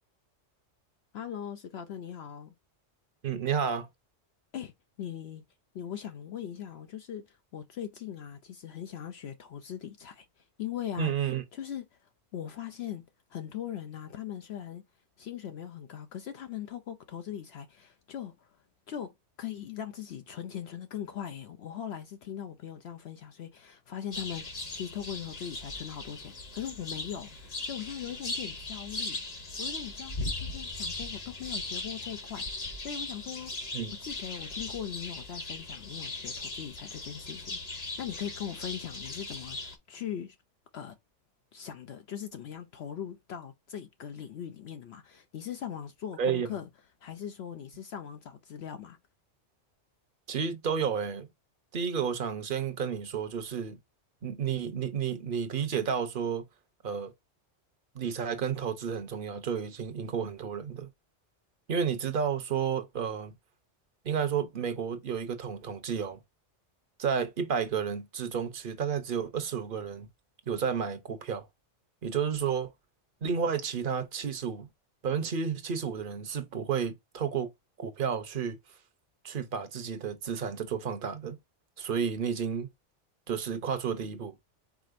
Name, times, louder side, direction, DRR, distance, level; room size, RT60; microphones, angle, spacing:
voice 1, 1.1-2.5 4.5-4.7 5.0-5.4 5.7-11.1 11.5-13.0 13.3-14.8 15.2-18.6 18.9-40.4 40.7-41.0 41.5-46.7 47.0-49.0, left 9 dB, 65° left, 0.8 m, -40 dB
voice 2, 3.2-3.9 11.0-11.4 33.7-33.9 46.2-46.5 50.3-51.3 51.7-53.8 54.2-56.4 56.8-57.1 57.9-60.9 61.7-63.3 64.0-66.2 67.0-70.1 70.5-71.4 72.0-72.7 73.2-74.7 75.0-77.5 77.8-78.6 79.2-81.4 81.8-82.7 83.3-84.3, right 7 dB, 50° right, 0.9 m, -31 dB
sound 1, 24.1-39.8, left 2 dB, 35° left, 1.0 m, -38 dB
4.9 x 4.2 x 2.5 m
omnidirectional pair, 1.2 m